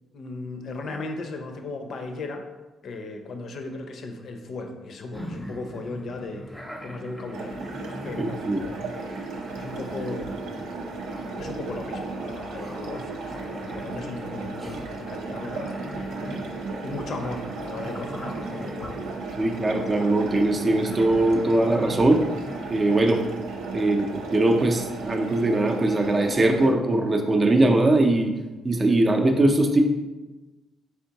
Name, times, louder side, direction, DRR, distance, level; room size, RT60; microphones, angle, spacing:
voice 1, 0.1-2.4 2.8-7.6 8.0-8.9 9.5-10.5 11.4-16.5 16.8-19.3, left 3 dB, 60° left, 5 dB, 0.6 m, -37 dB
sound 1, 5.1-23.0, equal, 5° left, 0.7 m, -41 dB
sound 2, 7.3-26.7, right 3 dB, 85° right, 0.5 m, -35 dB
voice 2, 8.2-8.6 19.4-22.2 22.7-23.2 23.7-28.3 28.6-29.8, right 2 dB, 30° right, 3 dB, 0.5 m, -21 dB
4.4 x 3.6 x 2.8 m, 1.2 s
cardioid pair, 90°, 0 cm